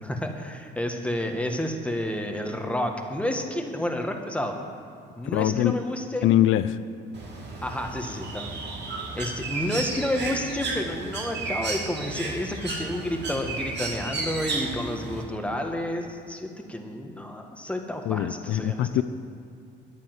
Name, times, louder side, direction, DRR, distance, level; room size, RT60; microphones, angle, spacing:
voice 1, 0.0-4.6 5.2-6.3 7.6-8.5 9.1-18.9, left 1 dB, 5° left, 3 dB, 1.7 m, -30 dB
voice 2, 5.3-5.8 6.2-6.8 18.1-19.0, left 12 dB, 85° left, 12 dB, 0.5 m, -22 dB
Bird, 7.1-15.2, right 3 dB, 60° right, 2.6 m, -33 dB
10.5 x 9.4 x 8.0 m, 2.4 s
cardioid pair, 90°, 20 cm